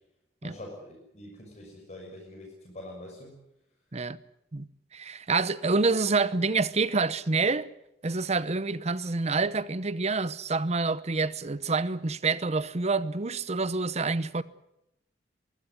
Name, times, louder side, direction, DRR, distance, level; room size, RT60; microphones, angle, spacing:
voice 1, 0.4-3.3, left 1 dB, 40° left, 6.4 m, -44 dB
voice 2, 4.5-7.7 8.0-14.4, right 3 dB, 40° right, 0.9 m, -27 dB
23.0 x 16.0 x 9.9 m
head